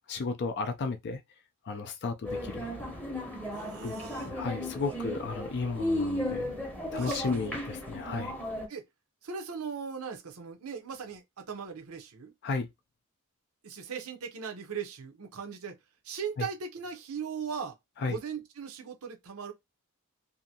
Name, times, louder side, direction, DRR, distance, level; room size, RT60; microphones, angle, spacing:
voice 1, 0.1-1.2 1.7-2.7 3.8-3.9 4.2-6.5 6.9-8.4 12.4-12.7 16.4-16.5 18.0-18.2, left 4 dB, 50° left, 0.4 m, -33 dB
sound 1, 2.2-8.7, left 1 dB, 5° left, 0.7 m, -35 dB
voice 2, 3.5-4.3 6.9-7.4 8.7-8.8 9.2-12.3 13.6-15.7 16.0-17.8 18.0-19.5, right 6 dB, 75° right, 0.7 m, -39 dB
2.7 x 2.6 x 2.7 m
head